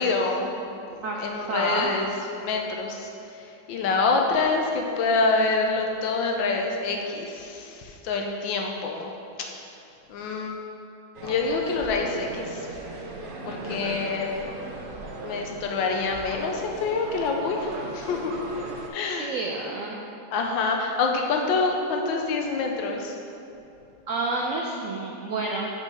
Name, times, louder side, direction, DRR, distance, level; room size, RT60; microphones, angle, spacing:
voice 1, 0.0-2.1 2.4-3.1 3.4-9.1 10.1-10.6 11.2-12.7 13.5-14.3 15.2-18.4 18.9-19.3 20.3-23.1, left 3 dB, 85° left, 2 dB, 1.5 m, -26 dB
voice 2, 1.5-1.9 19.2-20.0 24.1-25.7, right 2 dB, 70° right, -2 dB, 0.8 m, -29 dB
sound 1, 11.1-18.9, right 2 dB, 90° right, 0.4 m, -37 dB
6.4 x 5.0 x 5.4 m, 2.7 s
omnidirectional pair, 2.0 m